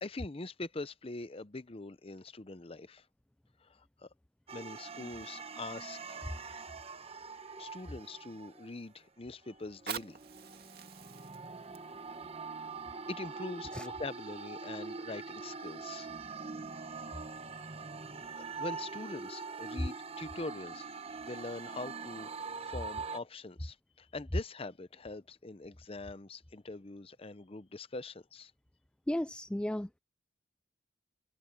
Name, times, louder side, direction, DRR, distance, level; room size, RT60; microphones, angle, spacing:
voice 1, 0.0-3.1 3.6-4.1 4.5-6.2 7.6-10.2 11.7-12.2 13.1-16.1 17.2-17.6 18.4-20.9 21.2-28.5, left 2 dB, 30° left, 0.7 m, -43 dB
sound 1, 4.5-8.9 9.4-23.2, right 4 dB, 30° right, 1.1 m, -44 dB
Fire, 9.6-14.6 15.2-15.3, right 7 dB, 55° right, 2.5 m, -47 dB
voice 2, 29.1-30.0, left 1 dB, 5° left, 0.3 m, -34 dB
head